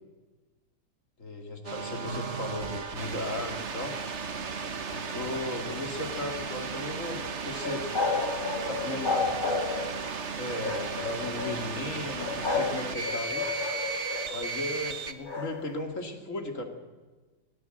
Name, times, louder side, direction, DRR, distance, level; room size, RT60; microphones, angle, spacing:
voice 1, 1.2-4.0 4.9-8.0 8.7-9.3 10.4-13.5 14.3-16.6, left 2 dB, 50° left, 4 dB, 2.9 m, -36 dB
sound 1, 1.6-15.1, right 5 dB, 45° right, 1.5 m, -35 dB
sound 2, 7.6-10.0 10.6-11.6 12.2-12.7 13.0-14.5 15.2-15.5, left 4 dB, 30° left, 4.5 m, -31 dB
25.0 x 19.0 x 8.0 m, 1.2 s
omnidirectional pair, 1.7 m